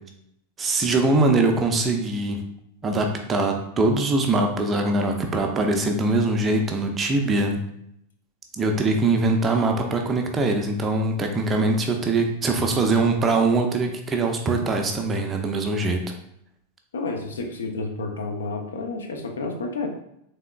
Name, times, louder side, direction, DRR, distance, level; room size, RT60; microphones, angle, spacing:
voice 1, 0.6-2.4 2.8-7.6 8.5-16.0, right 2 dB, 20° right, 3 dB, 0.5 m, -22 dB
voice 2, 16.9-19.9, left 3 dB, 65° left, 3 dB, 0.6 m, -30 dB
3.6 x 3.4 x 2.2 m, 0.75 s
figure-of-eight pair, 90°, 0 cm